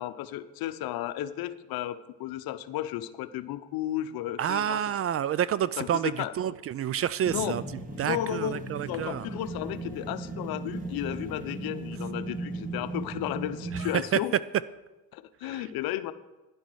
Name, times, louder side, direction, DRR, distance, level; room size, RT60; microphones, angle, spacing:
voice 1, 0.0-4.8 5.8-6.6 7.3-7.6 8.0-14.3 15.1-16.1, left 12 dB, 60° left, 13 dB, 0.8 m, -34 dB
voice 2, 4.4-7.6 8.0-9.2 13.7-13.9 15.5-15.6, right 10 dB, 35° right, 18 dB, 0.4 m, -29 dB
sound 1, 7.3-14.0, right 2 dB, 20° right, 2.4 m, -37 dB
11.5 x 10.5 x 4.7 m, 1.1 s
hypercardioid pair, 70°, 41 cm